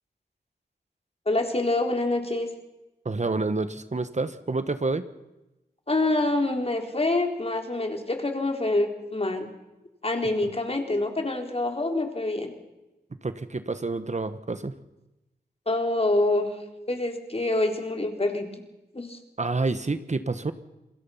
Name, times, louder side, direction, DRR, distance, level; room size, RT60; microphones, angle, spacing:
voice 1, 1.3-2.5 5.9-9.5 10.0-12.5 15.7-16.5 16.9-18.5 18.9-19.2, left 2 dB, 35° left, 4 dB, 3.8 m, -26 dB
voice 2, 3.0-5.0 13.2-14.7 19.4-20.5, right 3 dB, 45° right, 11 dB, 1.5 m, -28 dB
27.5 x 21.5 x 5.8 m, 0.99 s
wide cardioid pair, 60°, 17 cm